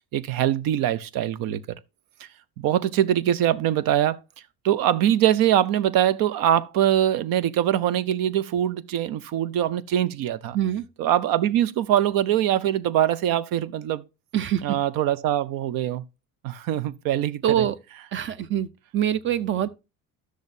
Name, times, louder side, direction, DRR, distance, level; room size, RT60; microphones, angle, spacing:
voice 1, 0.1-1.6 2.2-2.3 2.6-4.2 4.6-10.6 11.0-14.0 14.6-16.0 16.4-17.7, right 11 dB, 70° right, 0.7 m, -23 dB
voice 2, 17.4-17.7 18.1-18.7 18.9-19.7, right 10 dB, 35° right, 0.5 m, -24 dB
12.5 x 6.4 x 2.7 m
cardioid pair, 165°, 35 cm